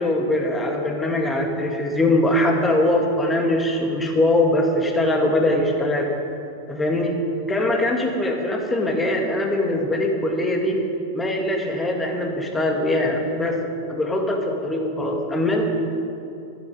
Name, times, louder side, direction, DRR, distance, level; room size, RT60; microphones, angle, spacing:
voice 1, 0.0-6.1 6.7-7.1 7.5-10.8 11.1-13.6 13.9-15.6, left 1 dB, 10° left, 2 dB, 2.3 m, -22 dB
14.5 x 14.5 x 5.3 m, 2.6 s
figure-of-eight pair, 90°, 0 cm